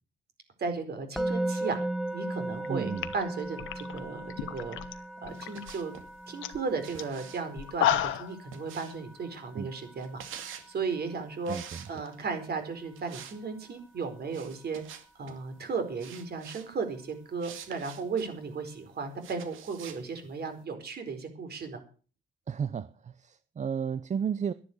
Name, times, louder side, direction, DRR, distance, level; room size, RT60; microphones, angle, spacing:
voice 1, 0.6-1.8 2.1-5.9 6.3-11.6 11.9-14.8 15.2-21.8, right 4 dB, 55° right, 4.5 m, -35 dB
Musical instrument, 1.2-12.3, right 1 dB, ahead, 1.0 m, -38 dB
sound 1, 2.5-2.7 3.0-4.9 5.2-5.7 6.1-6.2 6.4-6.6 7.0-7.1 7.6-8.3, left 11 dB, 85° left, 1.2 m, -30 dB
voice 2, 2.7-3.1 9.5-9.7 11.5-11.8 22.5-24.5, right 7 dB, 35° right, 0.7 m, -33 dB
sound 2, 5.3-6.1 6.8-9.2 10.0-10.7 11.4-12.3 12.9-13.4 13.6-13.8 14.3-15.4 16.0-16.7 17.4-18.3 19.2-20.0, right 8 dB, 90° right, 2.2 m, -46 dB
12.0 x 11.0 x 6.6 m
cardioid pair, 90°, 20 cm